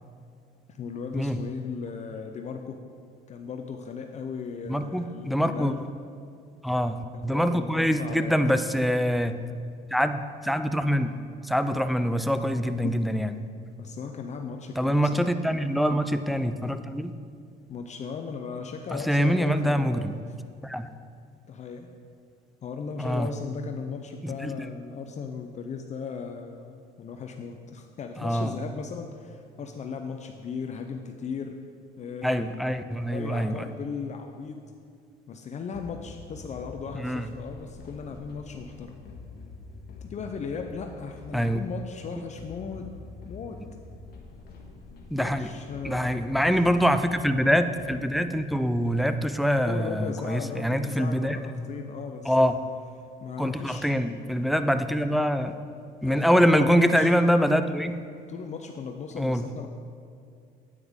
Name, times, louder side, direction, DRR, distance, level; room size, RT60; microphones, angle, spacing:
voice 1, 0.7-2.8 3.3-5.8 7.1-8.6 12.3-12.9 13.8-15.3 17.7-20.2 21.5-21.9 22.6-31.6 32.0-34.6 35.3-39.0 40.0-42.9 43.3-43.6 45.2-46.6 49.6-52.5 53.2-54.0 56.0-57.1 58.3-59.7, left 5 dB, 45° left, 4 dB, 0.6 m, -37 dB
voice 2, 4.7-5.7 6.6-9.4 9.9-11.1 11.4-13.3 14.8-17.1 18.9-20.2 20.6-20.9 23.0-23.3 24.2-24.7 28.2-28.5 32.2-33.7 37.0-37.3 41.3-41.6 45.1-45.5 45.8-51.7 52.3-52.6 53.4-55.5 56.0-58.0 59.2-59.5, equal, ahead, 9 dB, 0.4 m, -24 dB
sound 1, 35.7-49.0, left 3 dB, 70° left, 1.6 m, -46 dB
9.7 x 9.0 x 3.6 m, 2.3 s
cardioid pair, 110°, 17 cm